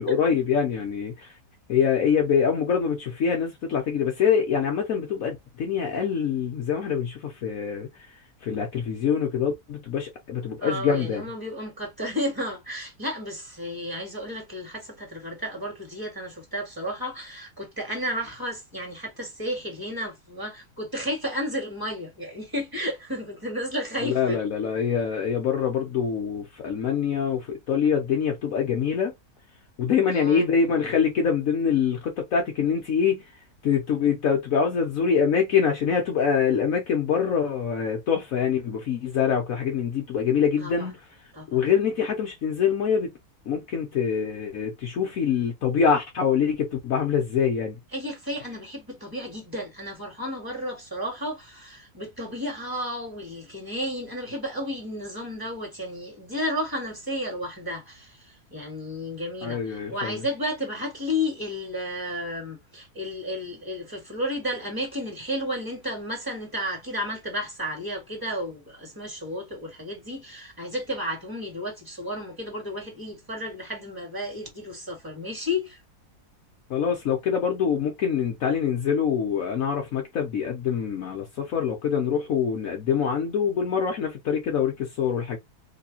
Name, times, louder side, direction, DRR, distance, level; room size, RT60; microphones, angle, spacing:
voice 1, 0.0-1.4 1.7-11.2 24.0-29.1 29.8-41.0 41.5-43.1 43.5-47.7 59.4-60.2 76.7-85.4, left 7 dB, 60° left, 1.1 m, -25 dB
voice 2, 10.6-24.4 30.1-30.5 40.6-40.9 41.3-41.6 47.9-75.8, equal, 15° right, 1.8 m, -32 dB
3.3 x 3.1 x 2.8 m
omnidirectional pair, 1.7 m